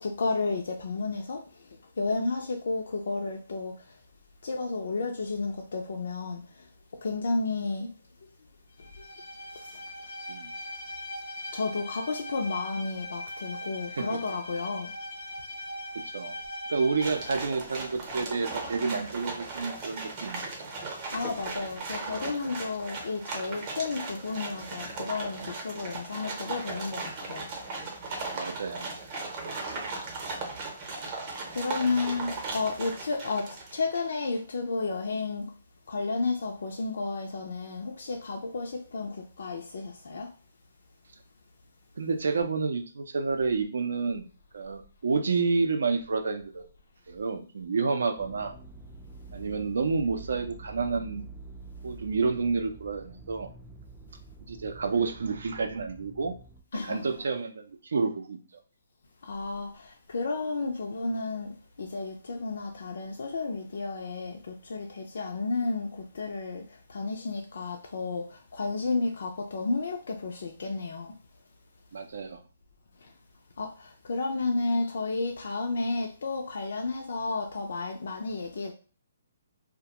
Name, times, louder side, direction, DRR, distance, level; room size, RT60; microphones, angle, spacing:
voice 1, 0.0-1.4 2.0-3.7 4.4-6.6 7.0-7.9 11.5-14.9 21.1-27.5 29.5-29.6 31.5-35.5 35.9-40.3 56.7-57.1 59.2-71.1 73.0-73.1 73.6-78.7, left 3 dB, 70° left, 0.4 m, -32 dB
Bowed string instrument, 8.8-17.4, left 1 dB, 85° left, 0.8 m, -40 dB
voice 2, 16.7-20.4 28.3-28.9 31.5-31.6 42.0-44.3 44.5-46.6 47.1-48.5 49.3-51.2 51.8-53.5 54.5-56.3 56.7-58.4 71.9-72.4, right 4 dB, 75° right, 0.5 m, -29 dB
sound 1, 17.0-34.2, right 3 dB, 35° right, 0.7 m, -37 dB
sound 2, 48.2-56.6, right 3 dB, 5° right, 0.3 m, -46 dB
2.3 x 2.1 x 2.8 m
hypercardioid pair, 150°, 0 cm